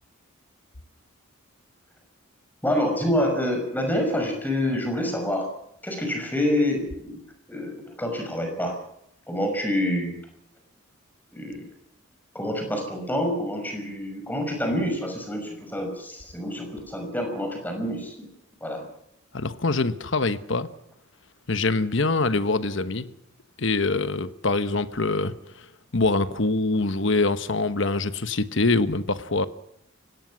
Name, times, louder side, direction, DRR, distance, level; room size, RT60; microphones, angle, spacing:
voice 1, 2.6-5.5 5.8-7.2 7.5-8.8 9.3-10.2 11.3-11.6 12.3-18.3 18.6-18.9, left 1 dB, 10° left, 4 dB, 5.7 m, -27 dB
voice 2, 19.3-20.7 21.5-23.1 23.6-25.7 25.9-29.5, left 3 dB, 60° left, 12 dB, 1.2 m, -24 dB
29.5 x 17.5 x 6.3 m, 0.76 s
head